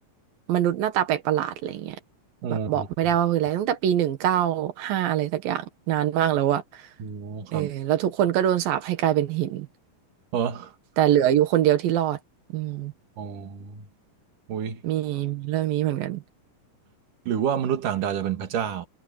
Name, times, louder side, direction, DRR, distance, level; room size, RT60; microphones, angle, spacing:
voice 1, 0.5-2.0 2.5-6.9 7.5-9.7 11.0-12.2 12.5-12.9 14.8-16.2, right 11 dB, 90° right, 3.3 m, -24 dB
voice 2, 2.4-2.9 7.0-7.7 10.3-10.7 13.2-13.8 14.5-14.8 17.3-18.9, right 8 dB, 70° right, 3.5 m, -28 dB
omnidirectional pair, 4.0 m